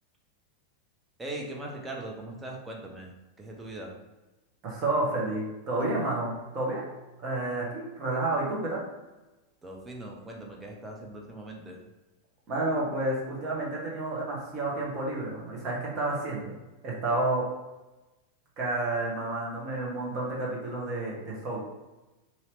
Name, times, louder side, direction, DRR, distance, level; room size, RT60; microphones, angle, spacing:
voice 1, 1.2-3.1 3.4-3.9 9.6-11.8, right 1 dB, 10° right, -1 dB, 0.6 m, -40 dB
voice 2, 4.6-6.8 7.2-8.8 12.5-16.6 16.8-17.4 18.6-21.6, right 2 dB, 35° right, -4 dB, 1.0 m, -30 dB
Piano, 5.8-8.0, equal, 80° left, 0.3 m, -42 dB
2.8 x 2.8 x 3.1 m, 1.1 s
figure-of-eight pair, 90°, 0 cm